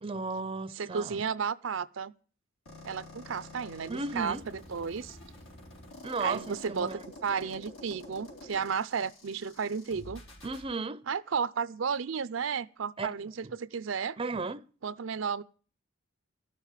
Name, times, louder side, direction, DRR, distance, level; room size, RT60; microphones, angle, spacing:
voice 1, 0.0-1.3 3.9-4.5 6.0-7.0 10.4-11.0 13.0-13.1 13.4-13.5 14.2-14.6, right 3 dB, 25° right, 0.6 m, -35 dB
voice 2, 0.7-2.1 2.8-5.2 6.2-10.2 11.1-14.2 14.8-15.4, right 6 dB, 70° right, 0.5 m, -33 dB
sound 1, 2.7-10.7, left 2 dB, 70° left, 4.5 m, -48 dB
12.5 x 6.7 x 8.9 m
head